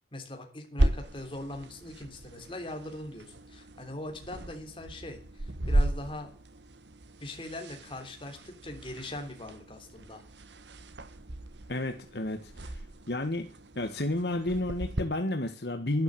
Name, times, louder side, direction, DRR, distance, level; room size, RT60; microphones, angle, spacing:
voice 1, 0.1-6.3 7.2-10.2, left 1 dB, 30° left, 4 dB, 3.3 m, -41 dB
Changing clothes, 0.8-15.0, right 1 dB, 80° right, 1.3 m, -35 dB
voice 2, 11.7-12.8 13.1-13.5 13.7-16.0, left 1 dB, 65° left, 6 dB, 1.5 m, -31 dB
11.5 x 11.5 x 7.7 m, 0.41 s
head